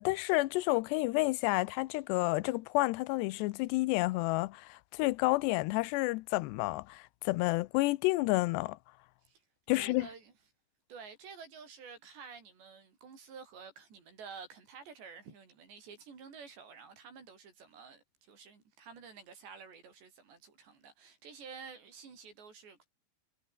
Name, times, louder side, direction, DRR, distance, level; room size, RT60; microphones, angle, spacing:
voice 1, 0.0-8.8 9.7-10.1, left 21 dB, 85° left, 2.8 m, -30 dB
voice 2, 9.7-10.3 10.9-22.9, right 5 dB, 85° right, 7.8 m, -50 dB
omnidirectional pair, 4.9 m